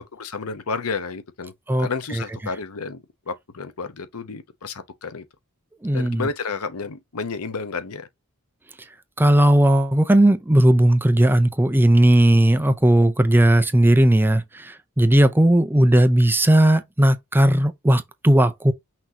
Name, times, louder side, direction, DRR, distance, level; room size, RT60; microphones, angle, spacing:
voice 1, 0.0-1.5 1.8-5.3 5.9-8.1, left 4 dB, 85° left, 0.8 m, -31 dB
voice 2, 5.8-6.3 9.2-18.7, right 1 dB, 10° right, 0.5 m, -17 dB
5.9 x 3.0 x 2.7 m
head